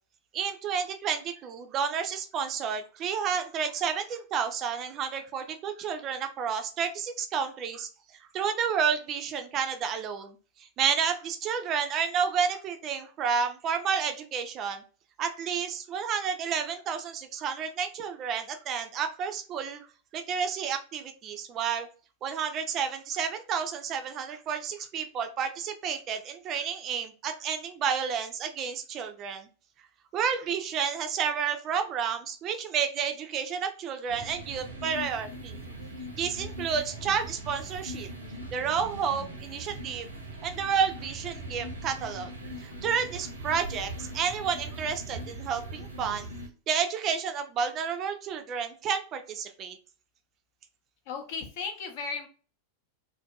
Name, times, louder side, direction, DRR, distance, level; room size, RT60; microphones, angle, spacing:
voice 1, 0.3-7.9 8.3-14.8 15.2-19.9 20.1-21.9 22.2-29.5 30.1-35.6 36.2-38.1 38.5-40.1 40.4-42.3 42.6-46.3 46.7-49.8, right 7 dB, 35° right, 7 dB, 0.4 m, -30 dB
sound 1, 34.1-46.5, right 1 dB, 85° right, 0.6 m, -40 dB
voice 2, 51.1-52.3, left 5 dB, 50° left, 4 dB, 0.6 m, -35 dB
2.5 x 2.2 x 2.3 m, 0.37 s
figure-of-eight pair, 90°, 0 cm